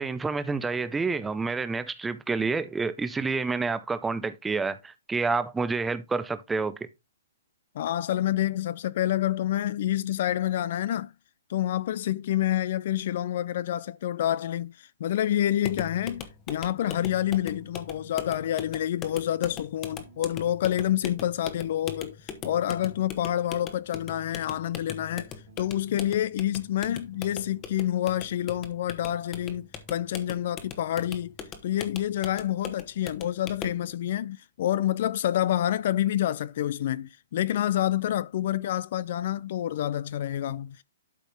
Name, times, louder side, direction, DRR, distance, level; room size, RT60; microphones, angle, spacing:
voice 1, 0.0-6.8, right 4 dB, 10° right, 0.6 m, -28 dB
voice 2, 7.8-11.1 11.5-22.2 22.4-25.3 25.6-31.3 31.6-40.8, left 12 dB, 50° left, 0.3 m, -28 dB
sound 1, 15.6-33.8, left 7 dB, 20° left, 1.1 m, -41 dB
sound 2, 17.5-18.9 19.1-20.7 21.1-23.6 24.6-24.7 25.1-32.6, right 6 dB, 65° right, 3.3 m, -57 dB
12.0 x 4.2 x 3.4 m
hypercardioid pair, 150°, 0 cm